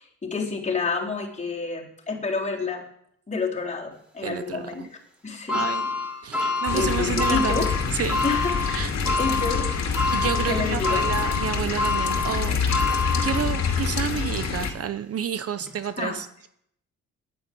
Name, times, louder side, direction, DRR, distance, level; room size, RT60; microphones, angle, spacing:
voice 1, 0.0-2.8 3.3-4.9 5.2-5.9 6.4-7.7 8.2-8.9 9.2-9.7 10.5-11.1 16.0-16.1, left 4 dB, 25° left, -2 dB, 3.8 m, -29 dB
voice 2, 4.2-4.9 5.5-5.8 6.2-8.2 8.6-8.9 10.1-12.6 13.2-16.5, right 8 dB, 50° right, 12 dB, 0.8 m, -30 dB
sound 1, 5.5-13.8 14.3-14.4 15.6-15.7, left 3 dB, 5° right, 4.7 m, -27 dB
sound 2, 6.7-14.7, left 5 dB, 60° left, 2.5 m, -26 dB
10.5 x 9.4 x 7.8 m, 0.70 s
cardioid pair, 90°, 30 cm